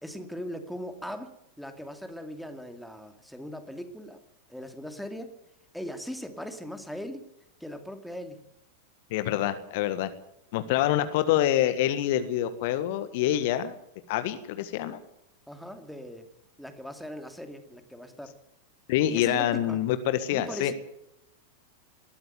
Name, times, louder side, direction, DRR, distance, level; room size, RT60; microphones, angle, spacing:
voice 1, 0.0-4.2 4.5-5.4 5.7-7.2 7.6-8.4 15.5-16.3 16.6-18.3 19.0-19.8 20.3-20.7, equal, ahead, 7 dB, 2.5 m, -39 dB
voice 2, 9.1-10.1 10.5-13.7 14.1-15.0 18.9-20.7, left 12 dB, 50° left, 11 dB, 1.5 m, -26 dB
20.5 x 14.0 x 9.3 m, 0.79 s
figure-of-eight pair, 90°, 0 cm